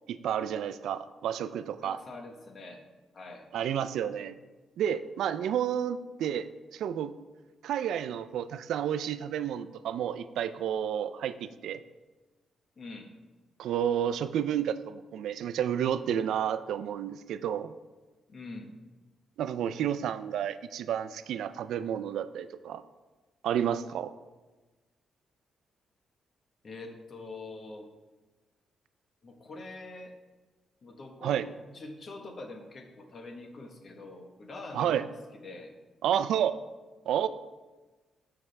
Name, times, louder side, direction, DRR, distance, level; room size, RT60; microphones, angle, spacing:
voice 1, 0.1-2.0 3.5-4.4 4.8-7.1 7.6-11.8 13.6-17.7 19.4-22.8 23.4-24.1 31.2-31.5 34.7-35.0 36.0-36.6 37.1-37.3, right 9 dB, 85° right, 13 dB, 0.4 m, -30 dB
voice 2, 1.8-2.8 3.1-3.4 12.8-13.1 18.3-18.7 26.6-27.9 29.2-30.1 30.8-31.4 31.7-35.0 35.4-35.7, left 3 dB, 40° left, 4 dB, 1.1 m, -44 dB
12.5 x 5.9 x 3.3 m, 1.2 s
cardioid pair, 150°, 0 cm